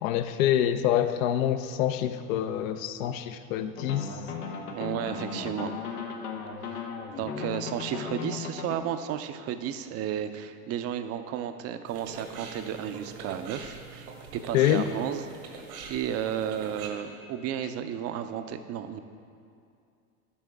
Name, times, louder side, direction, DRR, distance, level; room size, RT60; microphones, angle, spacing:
voice 1, 0.0-4.2 14.5-14.9, left 11 dB, 65° left, 10 dB, 0.6 m, -26 dB
sound 1, 3.8-8.8, left 6 dB, 90° left, 1.0 m, -36 dB
voice 2, 4.7-5.7 6.6-6.9 7.2-19.0, right 9 dB, 35° right, 9 dB, 0.5 m, -33 dB
sound 2, 11.9-16.9, right 4 dB, 80° right, 1.4 m, -44 dB
12.5 x 5.6 x 3.5 m, 2.4 s
hypercardioid pair, 95°, 44 cm